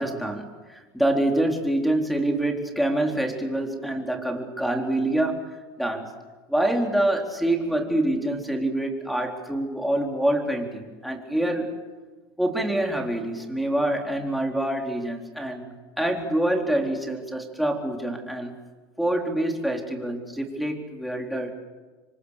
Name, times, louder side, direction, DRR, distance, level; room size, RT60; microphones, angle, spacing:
voice 1, 0.0-5.5 5.8-6.1 6.5-11.7 12.4-18.5 19.0-21.5, right 1 dB, ahead, 1 dB, 4.2 m, -26 dB
27.5 x 24.0 x 6.7 m, 1.3 s
supercardioid pair, 105°, 13 cm